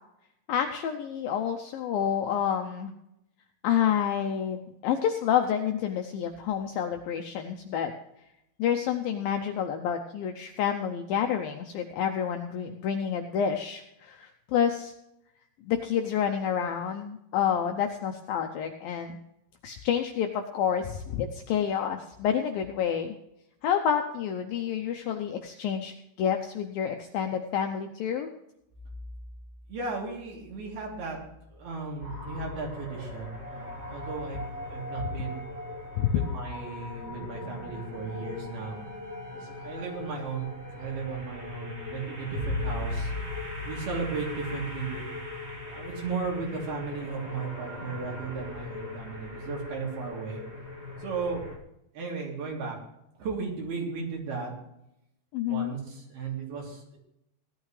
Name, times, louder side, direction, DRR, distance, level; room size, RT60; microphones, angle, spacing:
voice 1, 0.5-2.9 3.6-7.9 8.6-14.9 15.7-19.2 19.6-23.1 23.6-28.3 36.0-36.2 55.3-55.7, left 8 dB, 80° left, 5 dB, 2.1 m, -29 dB
voice 2, 29.7-31.2 31.5-35.6 36.1-38.8 39.3-40.5 40.8-43.1 43.6-45.1 45.6-50.4 51.0-51.4 51.9-52.8 53.2-54.5 55.5-57.0, right 4 dB, 65° right, -2 dB, 5.0 m, -35 dB
sound 1, 32.0-51.6, left 2 dB, 40° right, 0.8 m, -38 dB
17.0 x 12.5 x 3.3 m, 0.82 s
omnidirectional pair, 5.0 m